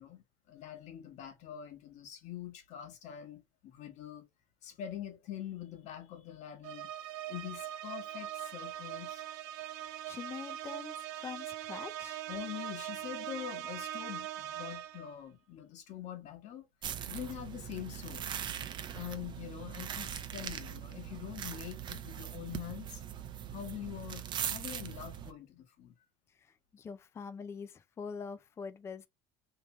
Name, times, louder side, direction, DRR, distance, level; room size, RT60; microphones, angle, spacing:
voice 1, 0.0-4.3 4.6-6.9 7.3-9.2 12.3-16.7 17.1-18.3 18.9-23.0 23.5-25.9, left 11 dB, 55° left, 1.2 m, -44 dB
sound 1, 6.6-15.1, right 12 dB, 90° right, 0.6 m, -41 dB
voice 2, 10.1-12.2 26.4-29.1, left 6 dB, 20° left, 0.4 m, -44 dB
sound 2, 16.8-25.3, right 9 dB, 35° right, 0.5 m, -41 dB
3.3 x 2.9 x 2.9 m
cardioid pair, 150°, 14 cm